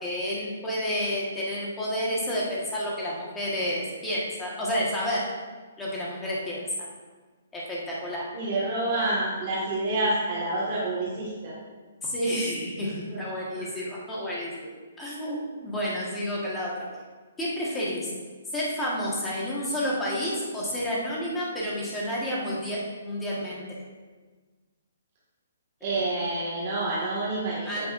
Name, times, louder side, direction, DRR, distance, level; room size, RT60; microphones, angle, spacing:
voice 1, 0.0-5.2 5.8-6.6 7.5-8.3 12.0-14.7 15.0-16.9 17.4-18.1 18.5-23.6 27.6-27.8, equal, 5° left, -6 dB, 1.4 m, -30 dB
voice 2, 8.3-11.5 13.1-13.2 13.5-13.6 25.8-27.9, right 2 dB, 30° right, -7 dB, 1.7 m, -28 dB
9.8 x 8.0 x 2.5 m, 1.4 s
hypercardioid pair, 175°, 0 cm